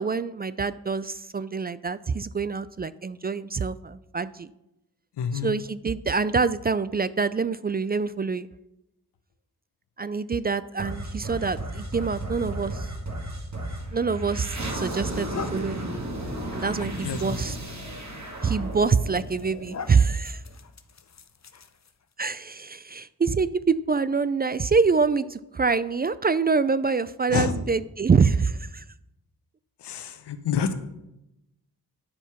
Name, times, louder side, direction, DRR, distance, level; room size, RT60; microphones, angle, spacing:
voice 1, 0.0-4.5 5.3-8.5 10.0-12.9 13.9-15.9 16.5-17.6 18.4-20.4 22.2-28.8, right 5 dB, 25° right, 16 dB, 0.3 m, -25 dB
voice 2, 5.2-5.5 16.6-16.7 17.0-17.4 27.3-27.5 29.8-30.7, left 7 dB, 85° left, 10 dB, 0.9 m, -28 dB
sound 1, 10.8-20.1, right 1 dB, 45° right, 1.8 m, -34 dB
sound 2, 14.0-14.1 14.7-22.1, left 5 dB, 40° left, 0.8 m, -43 dB
10.0 x 4.5 x 5.7 m, 0.90 s
cardioid pair, 45°, 40 cm